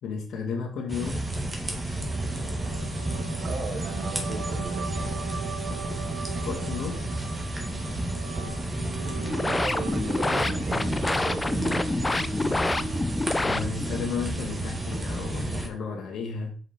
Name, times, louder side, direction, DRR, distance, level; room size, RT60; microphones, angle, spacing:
voice 1, 0.0-1.3 6.4-7.0 13.4-16.6, left 5 dB, 70° left, 1.7 m, -33 dB
sound 1, 0.9-15.7, right 1 dB, 25° right, 1.6 m, -31 dB
sound 2, 2.0-15.0, right 7 dB, 80° right, 0.8 m, -42 dB
voice 2, 3.4-4.9 9.4-12.0, right 4 dB, 55° right, 1.0 m, -36 dB
sound 3, 9.1-14.1, left 2 dB, 15° left, 0.4 m, -27 dB
5.1 x 4.9 x 4.3 m
cardioid pair, 90°, 0 cm